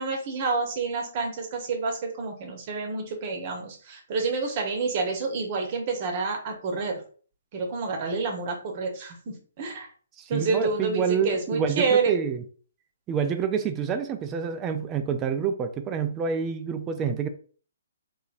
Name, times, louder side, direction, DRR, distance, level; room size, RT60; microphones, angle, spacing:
voice 1, 0.0-7.0 7.5-9.9 10.3-12.1, right 4 dB, 40° right, 0.9 m, -28 dB
voice 2, 10.2-12.4 13.1-17.3, right 7 dB, 20° right, 0.4 m, -27 dB
3.9 x 2.8 x 2.4 m
figure-of-eight pair, 130°, 0 cm